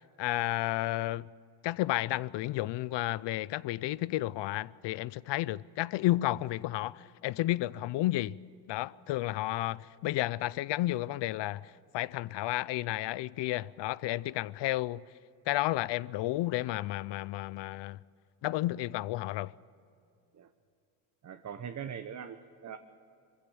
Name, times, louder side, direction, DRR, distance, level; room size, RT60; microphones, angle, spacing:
voice 1, 0.2-1.3 1.6-8.4 8.7-15.0 15.5-18.0 18.4-19.5, left 16 dB, 60° left, 0.6 m, -32 dB
voice 2, 21.2-22.8, right 8 dB, 35° right, 0.9 m, -41 dB
22.0 x 15.5 x 8.6 m
cardioid pair, 95°, 48 cm